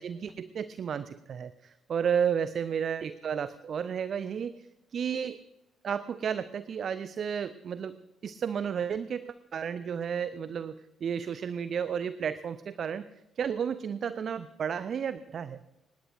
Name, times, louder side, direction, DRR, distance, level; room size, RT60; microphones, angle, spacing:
voice 1, 0.0-5.4 5.8-8.0 8.2-13.1 13.4-15.6, right 7 dB, 45° right, 14 dB, 0.6 m, -32 dB
23.5 x 20.0 x 2.6 m, 0.92 s
figure-of-eight pair, 45°, 0 cm